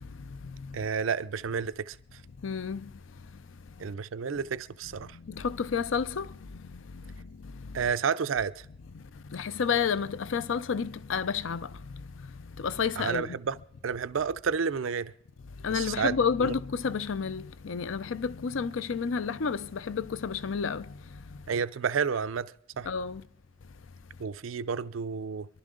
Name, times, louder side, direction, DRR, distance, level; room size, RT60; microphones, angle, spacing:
voice 1, 0.7-2.0 3.8-5.2 7.7-8.7 13.0-13.6 13.8-15.1 15.7-16.6 21.5-22.9 24.2-25.5, right 6 dB, 85° right, 0.5 m, -31 dB
voice 2, 2.4-2.9 5.3-6.3 9.3-11.7 12.6-13.4 15.6-20.9 22.9-23.2, left 6 dB, 80° left, 0.5 m, -30 dB
28.0 x 11.5 x 3.8 m
head